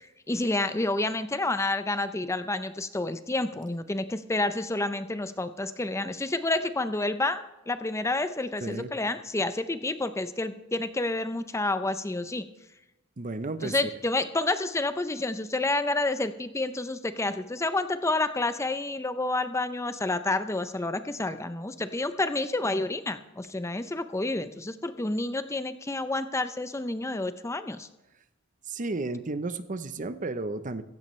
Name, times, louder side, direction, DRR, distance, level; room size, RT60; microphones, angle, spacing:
voice 1, 0.0-12.5 13.6-27.9, left 2 dB, 15° left, 11 dB, 0.6 m, -29 dB
voice 2, 13.2-13.7 28.7-30.8, right 2 dB, 40° right, 12 dB, 0.7 m, -33 dB
16.0 x 15.5 x 3.2 m, 0.96 s
head